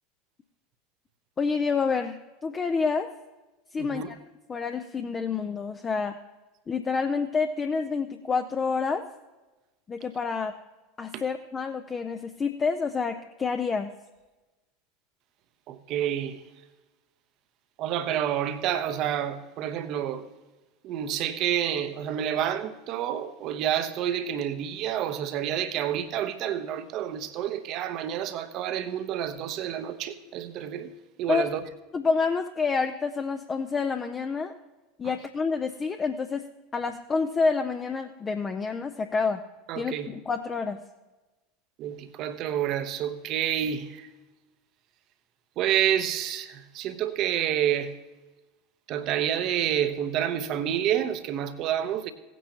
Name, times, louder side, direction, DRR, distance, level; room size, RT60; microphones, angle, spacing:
voice 1, 1.4-3.1 3.7-4.2 4.5-6.2 6.7-9.0 9.9-10.5 11.0-13.9 31.3-31.5 31.9-34.5 35.0-36.4 36.7-39.4 39.8-40.8, left 4 dB, 25° left, 0.6 m, -28 dB
voice 2, 3.8-4.1 11.1-11.2 15.7-16.4 17.8-20.3 20.8-30.9 31.2-31.6 35.0-35.1 39.7-40.1 41.8-44.1 45.6-47.9 48.9-52.1, right 10 dB, 45° right, 0.9 m, -29 dB
17.5 x 9.2 x 2.9 m
figure-of-eight pair, 75°, 0 cm